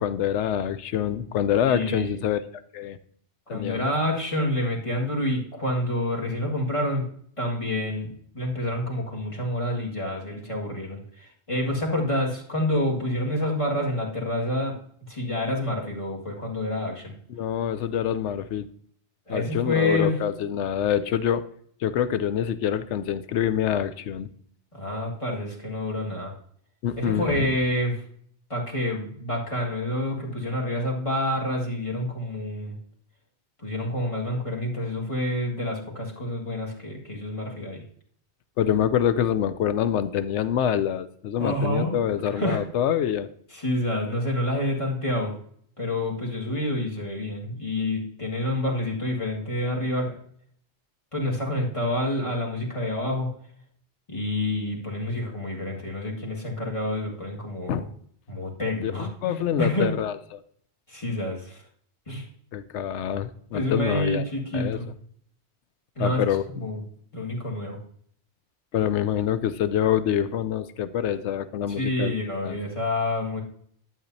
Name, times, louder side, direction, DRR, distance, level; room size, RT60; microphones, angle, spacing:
voice 1, 0.0-2.4 2.7-3.0 3.5-3.9 17.3-18.7 19.3-21.4 21.8-24.3 26.8-27.5 38.6-43.3 57.7-57.8 58.8-60.4 62.5-64.2 64.5-64.8 66.0-66.7 68.7-72.1 72.4-72.6, left 9 dB, 80° left, 13 dB, 0.9 m, -26 dB
voice 2, 1.7-2.2 3.5-7.1 7.4-14.8 15.1-17.1 19.3-20.2 24.7-26.3 27.0-28.0 28.5-32.8 33.6-37.8 41.4-42.0 42.3-42.6 43.5-45.3 45.8-50.2 51.1-53.3 54.1-57.8 58.3-59.9 60.9-61.6 62.1-62.2 63.5-64.9 66.0-66.2 66.5-66.8 67.1-67.8 71.7-73.4, left 1 dB, 30° left, -2 dB, 1.8 m, -28 dB
11.5 x 7.6 x 2.7 m, 0.63 s
omnidirectional pair, 1.2 m